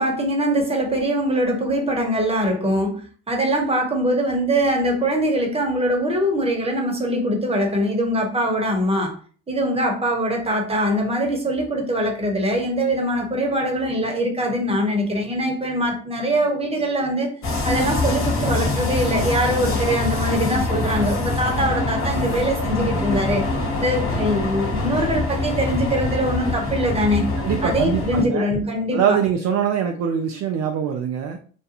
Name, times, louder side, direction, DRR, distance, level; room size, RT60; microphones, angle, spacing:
voice 1, 0.0-3.0 3.3-9.2 9.5-17.3 17.6-23.4 23.8-27.3 27.6-29.2, equal, 15° right, 0.9 m, -22 dB
sound 1, 17.4-28.2, left 2 dB, 35° left, 1.0 m, -24 dB
voice 2, 27.4-28.5 28.9-31.4, right 8 dB, 45° right, 0.4 m, -23 dB
2.4 x 2.2 x 2.9 m
hypercardioid pair, 65°, 38 cm